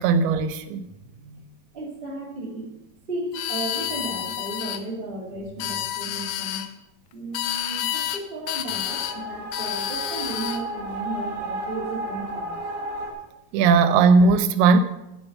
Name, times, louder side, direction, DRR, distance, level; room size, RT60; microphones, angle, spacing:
voice 1, 0.0-0.9 13.5-14.8, right 4 dB, 90° right, 2.7 m, -18 dB
voice 2, 0.9-1.4 1.7-2.7 3.1-6.6 7.1-12.6 12.9-13.0, right 2 dB, 20° right, 1.7 m, -34 dB
sound 1, 3.3-4.8 5.5-6.7 7.3-8.2 8.5-9.2 9.5-10.6, left 12 dB, 90° left, 2.5 m, -29 dB
sound 2, 8.8-13.1, right 1 dB, 45° right, 2.0 m, -33 dB
9.8 x 6.8 x 6.5 m
omnidirectional pair, 4.4 m